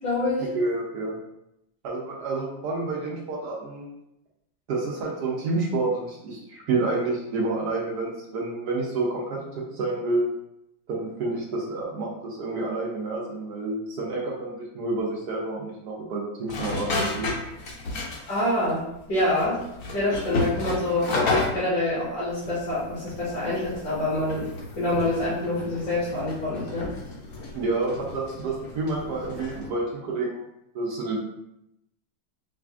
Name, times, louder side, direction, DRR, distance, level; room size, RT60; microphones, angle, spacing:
voice 1, 0.0-0.4 18.3-19.6 19.9-21.1 21.5-24.5 24.7-26.9, left 1 dB, 60° left, -12 dB, 2.1 m, -26 dB
voice 2, 0.5-1.2 1.8-3.9 4.7-9.4 9.7-10.3 10.9-17.3 27.5-30.4 30.7-31.2, right 3 dB, 70° right, -3 dB, 1.0 m, -29 dB
sound 1, 16.5-18.4 18.7-18.8 19.2-21.8 22.3-29.7, left 2 dB, 80° left, 0.7 m, -32 dB
4.9 x 2.5 x 2.4 m, 0.83 s
omnidirectional pair, 2.3 m